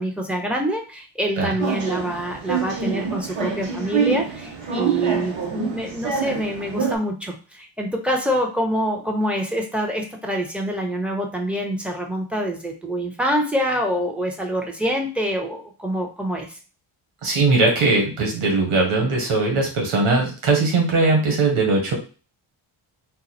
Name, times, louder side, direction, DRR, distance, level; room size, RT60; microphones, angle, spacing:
voice 1, 0.0-16.5, equal, ahead, 1 dB, 1.2 m, -26 dB
sound 1, 1.6-7.0, right 6 dB, 65° right, 1.3 m, -26 dB
voice 2, 17.2-21.9, right 3 dB, 85° right, 0 dB, 1.6 m, -20 dB
4.0 x 2.6 x 4.3 m, 0.35 s
cardioid pair, 80°, 50 cm